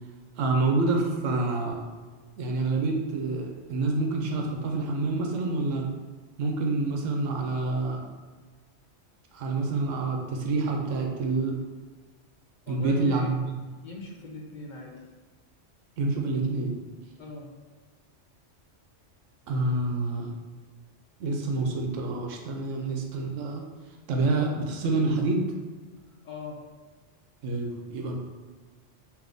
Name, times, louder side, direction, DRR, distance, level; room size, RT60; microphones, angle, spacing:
voice 1, 0.4-1.8 2.4-5.9 6.4-8.0 9.3-11.6 12.7-13.5 16.0-16.8 19.5-20.3 21.2-23.6 24.1-25.5 27.4-28.2, right 3 dB, 85° right, 1 dB, 1.0 m, -27 dB
voice 2, 12.7-13.3 13.8-14.9 17.2-17.5 26.2-26.6, left 3 dB, 60° left, 0 dB, 0.5 m, -40 dB
3.4 x 2.9 x 3.8 m, 1.4 s
omnidirectional pair, 1.3 m